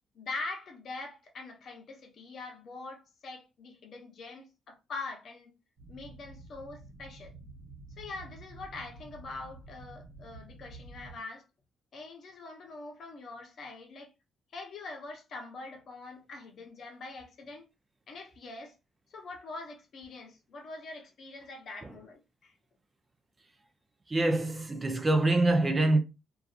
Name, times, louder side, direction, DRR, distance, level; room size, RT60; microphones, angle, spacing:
voice 1, 0.1-5.5 5.9-7.3 8.0-11.4 11.9-14.1 14.5-17.7 18.1-18.7 19.1-22.5, left 3 dB, 60° left, 0.8 m, -43 dB
sound 1, 5.8-11.2, right 2 dB, 75° right, 0.9 m, -50 dB
voice 2, 24.1-26.0, right 2 dB, 25° right, 0.5 m, -25 dB
2.6 x 2.3 x 2.4 m
cardioid pair, 90°, 0 cm